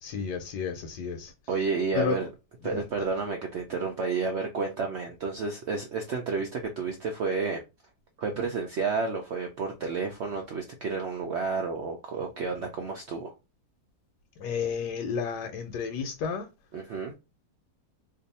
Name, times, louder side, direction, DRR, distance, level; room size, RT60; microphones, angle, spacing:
voice 1, 0.0-1.3 1.9-2.2 2.6-2.8 14.4-16.5, left 6 dB, 80° left, 1.2 m, -32 dB
voice 2, 1.5-2.3 2.6-7.6 8.2-13.3 16.7-17.1, right 4 dB, 75° right, 0.6 m, -31 dB
2.6 x 2.5 x 4.0 m
omnidirectional pair, 1.8 m